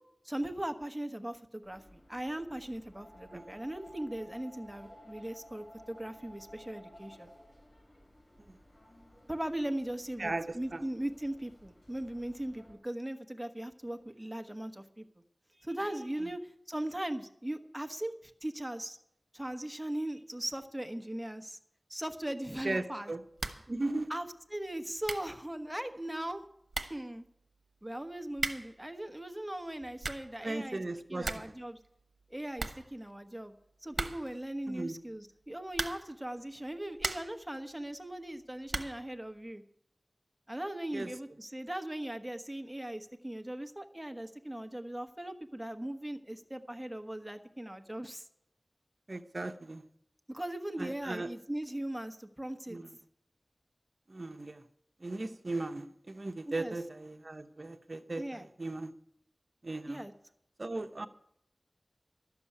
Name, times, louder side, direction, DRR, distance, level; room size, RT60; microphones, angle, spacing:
voice 1, 0.2-7.3 9.3-15.0 15.6-19.0 19.3-21.6 21.9-23.1 24.1-24.2 24.5-26.4 26.9-27.2 27.8-30.8 31.1-31.8 32.3-33.5 33.8-39.6 40.5-48.2 50.3-52.8 56.5-56.7 58.2-58.5 59.9-60.1, right 1 dB, 10° right, 6 dB, 1.2 m, -39 dB
sound 1, 1.6-12.7, equal, 75° left, 4.7 m, -56 dB
voice 2, 10.2-10.9 22.6-23.2 23.7-24.1 30.4-31.5 34.7-35.0 40.9-41.1 49.1-49.8 50.8-51.3 52.7-52.9 54.1-54.7 55.0-58.9 59.6-60.1 60.6-61.1, right 2 dB, 60° right, 8 dB, 0.9 m, -37 dB
sound 2, 23.4-23.7 24.0-24.1 24.7-24.8 25.0-25.4 26.3-26.4 26.7-27.1 28.3-28.8 29.7-30.4 30.7-30.8 31.0-31.6 31.8-31.9 32.2-32.3 32.6-33.4 33.9-34.4 35.7-36.2 36.7-37.4 38.7-39.1, right 3 dB, 85° right, 1.0 m, -38 dB
12.5 x 7.0 x 9.8 m, 0.73 s
wide cardioid pair, 50°, 0 cm